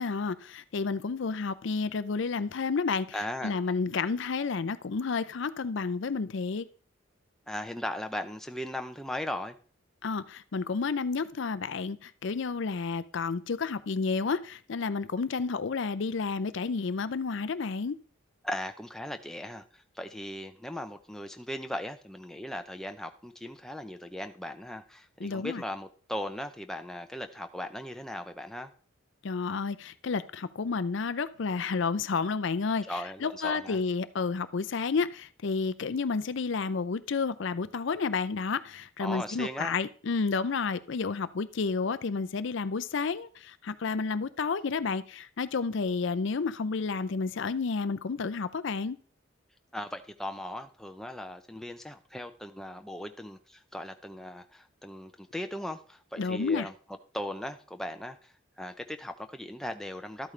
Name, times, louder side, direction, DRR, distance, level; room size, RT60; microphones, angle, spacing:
voice 1, 0.0-3.2 3.4-6.7 10.0-17.9 25.2-25.6 29.2-32.8 33.2-49.0 56.2-56.7, left 4 dB, 60° left, 0.5 m, -31 dB
voice 2, 3.1-3.6 7.5-9.6 18.4-28.7 32.8-33.8 39.0-39.8 49.7-56.7 57.1-60.3, left 1 dB, ahead, 0.6 m, -38 dB
12.5 x 8.6 x 3.3 m
head